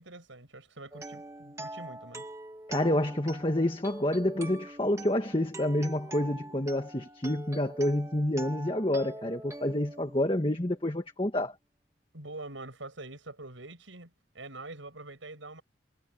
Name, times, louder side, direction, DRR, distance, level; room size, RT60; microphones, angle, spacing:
voice 1, 0.0-2.3 12.1-15.6, right 2 dB, 90° right, 8.0 m, -45 dB
sound 1, 0.9-10.8, right 2 dB, 15° right, 1.5 m, -44 dB
voice 2, 2.7-11.5, left 1 dB, 25° left, 1.7 m, -28 dB
head